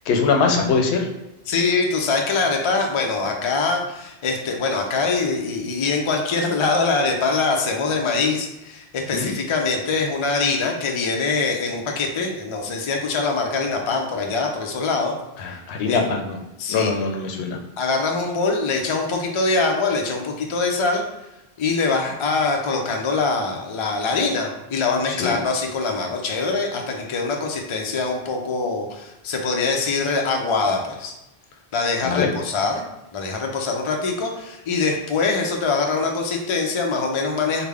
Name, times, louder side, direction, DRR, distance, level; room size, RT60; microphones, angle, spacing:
voice 1, 0.1-1.1 9.1-9.3 15.4-16.4 16.7-17.6 25.1-25.4 32.0-32.3, left 4 dB, 80° left, 3 dB, 0.8 m, -22 dB
voice 2, 1.5-15.6 15.9-16.0 16.6-17.0 17.8-21.0 21.6-31.1 31.7-32.8 33.1-37.6, left 4 dB, 55° left, 2 dB, 0.3 m, -23 dB
3.5 x 2.1 x 3.3 m, 0.94 s
omnidirectional pair, 1.1 m